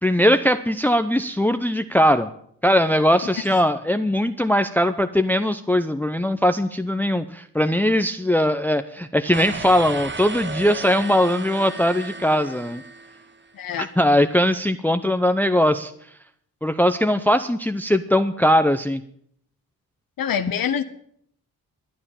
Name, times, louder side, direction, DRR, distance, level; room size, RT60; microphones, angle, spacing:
voice 1, 0.0-2.3 2.6-12.8 13.8-15.9 16.6-19.0, equal, 5° left, 10 dB, 0.7 m, -20 dB
sound 1, 9.3-13.5, right 3 dB, 30° right, 1.1 m, -35 dB
voice 2, 13.5-13.9 20.2-20.8, left 8 dB, 65° left, 10 dB, 0.9 m, -25 dB
12.5 x 9.5 x 7.2 m, 0.66 s
cardioid pair, 65°, 37 cm